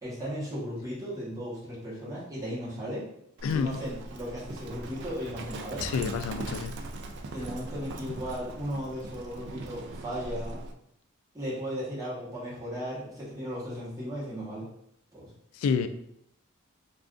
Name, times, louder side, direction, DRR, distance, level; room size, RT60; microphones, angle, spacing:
voice 1, 0.0-3.1 3.5-5.9 7.3-10.6 11.3-14.7 15.1-15.3, equal, 15° right, -8 dB, 1.0 m, -36 dB
voice 2, 3.4-3.8 5.8-6.7 15.6-15.9, left 6 dB, 80° left, 10 dB, 0.3 m, -28 dB
Livestock farm animals working animals, 3.4-10.7, right 2 dB, 55° right, 0.3 m, -40 dB
2.4 x 2.4 x 3.6 m, 0.74 s
head